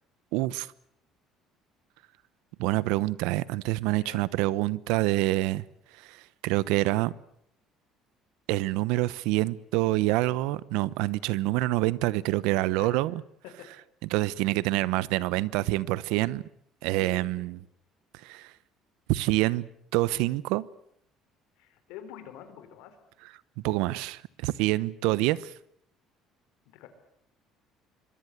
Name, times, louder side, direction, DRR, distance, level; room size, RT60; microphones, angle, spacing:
voice 1, 0.3-0.7 2.6-5.6 6.0-7.1 8.5-13.2 14.1-16.4 16.8-17.6 18.2-18.5 19.1-20.7 23.6-25.5, right 18 dB, 90° right, 0.9 m, -26 dB
voice 2, 16.9-17.5 21.6-23.0 26.6-26.9, left 9 dB, 85° left, 5.1 m, -47 dB
26.0 x 22.0 x 8.1 m
cardioid pair, 145°, 0 cm